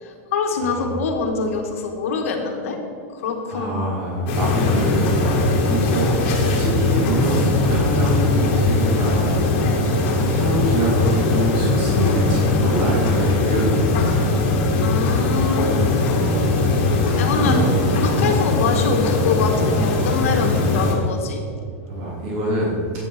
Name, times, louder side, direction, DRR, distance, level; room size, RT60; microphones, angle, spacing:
voice 1, 0.0-2.8 3.1-3.9 5.8-6.0 9.6-9.9 14.8-16.1 17.2-17.6 17.9-21.4, left 5 dB, 70° left, 3 dB, 1.7 m, -25 dB
voice 2, 0.6-0.9 3.5-14.2 17.0-18.4 21.9-22.7, right 1 dB, 35° right, -5 dB, 3.2 m, -25 dB
sound 1, 4.3-20.9, left 3 dB, 45° left, 2.2 m, -20 dB
11.0 x 9.4 x 5.0 m, 2.3 s
supercardioid pair, 175°, 8 cm